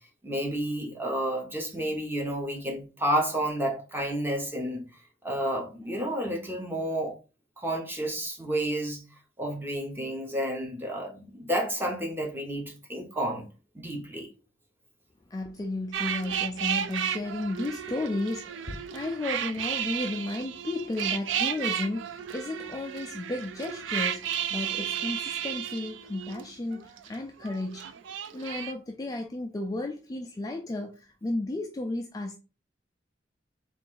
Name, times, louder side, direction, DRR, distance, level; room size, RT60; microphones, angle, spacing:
voice 1, 0.2-4.8 5.2-7.2 7.6-9.0 9.4-13.4 13.7-14.3, right 1 dB, 10° right, 0.9 m, -30 dB
voice 2, 15.3-27.9 28.3-32.4, left 2 dB, 20° left, 0.3 m, -33 dB
sound 1, 15.9-27.1 27.4-28.7, right 9 dB, 80° right, 0.4 m, -33 dB
3.8 x 2.5 x 3.7 m
head